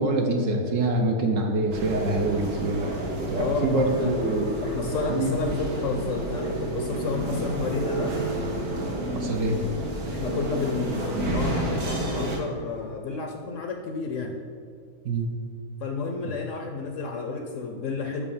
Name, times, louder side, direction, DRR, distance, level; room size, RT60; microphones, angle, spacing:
voice 1, 0.0-4.5 5.1-5.3 9.1-9.6 15.0-15.3, right 2 dB, 65° right, 2 dB, 1.0 m, -25 dB
sound 1, 1.7-12.4, right 1 dB, 80° right, 1.6 m, -30 dB
voice 2, 3.3-4.1 4.6-8.1 10.1-14.3 15.8-18.2, left 4 dB, 65° left, 3 dB, 0.9 m, -31 dB
5.8 x 4.9 x 5.4 m, 2.1 s
omnidirectional pair, 1.5 m